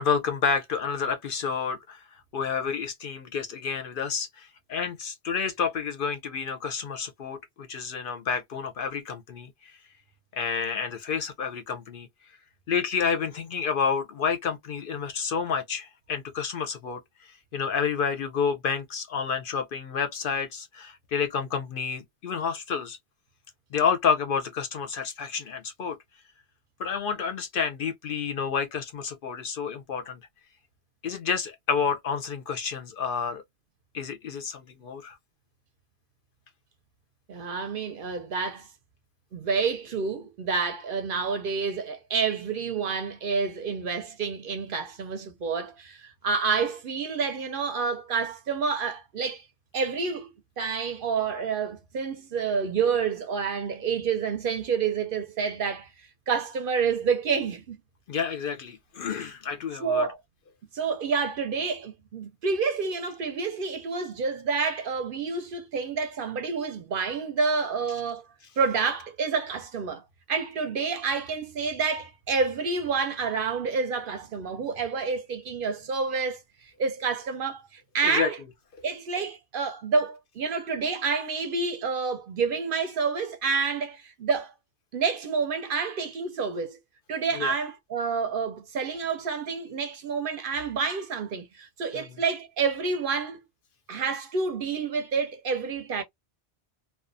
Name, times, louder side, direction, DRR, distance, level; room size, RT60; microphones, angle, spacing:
voice 1, 0.0-9.7 10.3-12.1 12.7-23.0 23.7-26.0 26.8-30.2 31.0-33.4 33.9-35.2 58.1-60.1 78.0-78.3 87.4-87.5 91.9-92.1, left 6 dB, 60° left, 0.6 m, -29 dB
voice 2, 37.3-38.7 39.3-49.4 49.7-50.3 50.6-55.9 56.3-57.8 59.8-60.2 60.7-68.2 68.6-70.0 70.3-78.4 78.8-84.5 84.9-86.8 87.1-93.4 93.9-96.0, right 5 dB, 60° right, 0.7 m, -28 dB
2.4 x 2.2 x 2.5 m
omnidirectional pair, 1.1 m